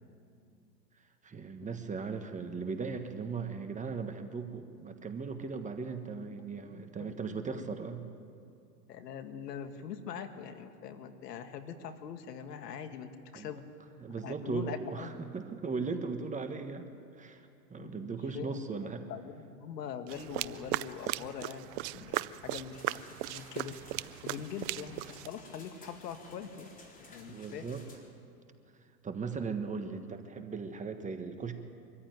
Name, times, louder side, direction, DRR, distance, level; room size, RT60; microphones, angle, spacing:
voice 1, 1.2-8.0 13.3-13.5 14.0-16.9 17.2-17.4 17.7-19.0 27.3-27.8 29.0-31.5, right 5 dB, 15° right, 7 dB, 1.4 m, -38 dB
voice 2, 6.7-7.7 8.9-13.6 14.2-15.2 17.8-23.8 24.2-25.0 25.3-26.7 27.0-27.6, left 7 dB, 75° left, 8 dB, 2.0 m, -43 dB
sound 1, 20.1-25.3, right 17 dB, 35° right, 0.5 m, -37 dB
sound 2, 22.7-28.0, left 2 dB, 15° left, 3.9 m, -55 dB
24.0 x 14.5 x 9.3 m, 2.4 s
hypercardioid pair, 115°, 49 cm